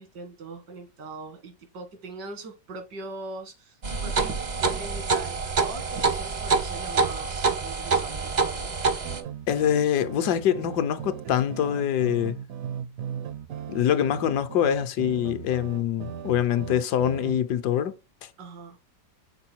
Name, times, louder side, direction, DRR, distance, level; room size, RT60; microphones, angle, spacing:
voice 1, 0.0-8.7 18.4-18.8, right 2 dB, 85° right, 2.2 m, -41 dB
sound 1, 3.8-9.2, right 4 dB, 45° right, 0.5 m, -26 dB
sound 2, 9.0-17.4, right 8 dB, 65° right, 0.9 m, -38 dB
voice 2, 9.5-12.4 13.7-17.9, left 9 dB, 75° left, 1.2 m, -24 dB
6.8 x 4.1 x 4.4 m
omnidirectional pair, 1.8 m